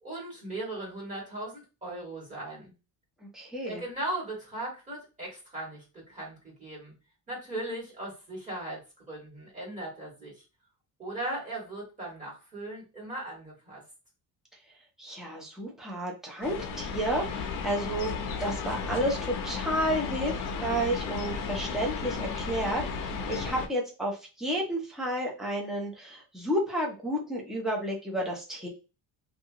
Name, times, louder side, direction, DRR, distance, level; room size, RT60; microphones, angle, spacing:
voice 1, 0.0-2.7 3.6-6.9 7.3-8.8 9.1-10.4 11.0-13.8, right 1 dB, 20° right, -5 dB, 1.6 m, -38 dB
voice 2, 3.3-3.8 15.0-18.1 18.4-28.7, right 1 dB, ahead, -1 dB, 0.5 m, -31 dB
sound 1, 16.4-23.7, left 5 dB, 55° left, 0.6 m, -34 dB
2.7 x 2.4 x 2.7 m, 0.31 s
cardioid pair, 165°, 41 cm